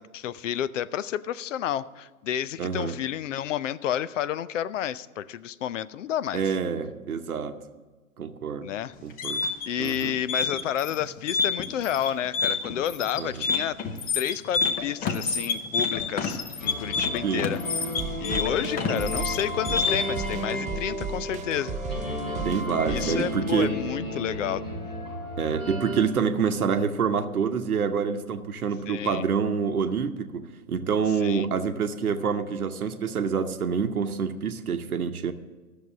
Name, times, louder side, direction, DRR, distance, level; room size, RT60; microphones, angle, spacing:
voice 1, 0.1-6.5 8.6-8.9 9.7-13.8 14.1-17.6 18.2-21.8 22.9-24.6 28.9-29.3 31.2-31.5, left 10 dB, 60° left, 17 dB, 0.6 m, -30 dB
voice 2, 2.6-3.0 6.3-7.6 8.2-8.7 9.0-9.5 9.8-10.2 13.2-13.3 17.2-17.5 22.4-23.7 25.4-35.3, right 6 dB, 80° right, 8 dB, 0.9 m, -27 dB
sound 1, 8.9-20.3, left 5 dB, 20° left, 0.8 m, -28 dB
sound 2, 16.6-26.0, equal, 85° left, 5.1 m, -33 dB
sound 3, 18.0-23.3, right 5 dB, 15° right, 0.7 m, -35 dB
13.5 x 6.7 x 7.2 m, 1.3 s
hypercardioid pair, 115°, 43 cm